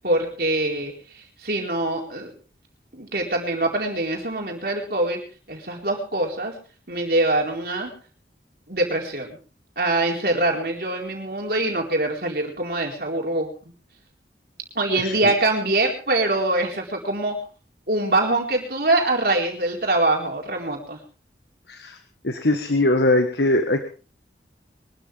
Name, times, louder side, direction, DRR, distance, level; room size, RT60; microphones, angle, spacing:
voice 1, 0.0-2.3 2.9-5.2 5.5-6.6 6.9-7.9 8.7-9.4 9.8-13.5 14.7-17.4 17.9-21.0, right 2 dB, 55° right, 1 dB, 4.4 m, -24 dB
voice 2, 21.7-22.0 22.2-23.8, left 1 dB, 75° left, 7 dB, 1.5 m, -20 dB
24.0 x 13.0 x 3.5 m, 0.37 s
head